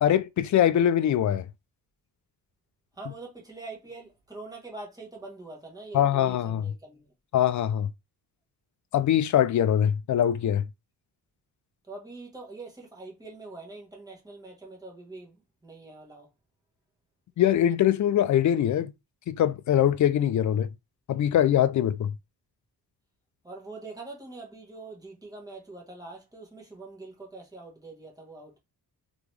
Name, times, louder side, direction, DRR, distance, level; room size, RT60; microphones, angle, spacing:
voice 1, 0.0-1.5 5.9-6.6 7.3-7.9 8.9-10.7 17.4-18.9 19.3-20.7 21.1-22.1, left 10 dB, 50° left, 0.4 m, -23 dB
voice 2, 2.9-7.1 11.8-16.3 23.4-28.6, right 3 dB, 10° right, 1.3 m, -44 dB
3.7 x 3.0 x 3.2 m
wide cardioid pair, 160°, 38 cm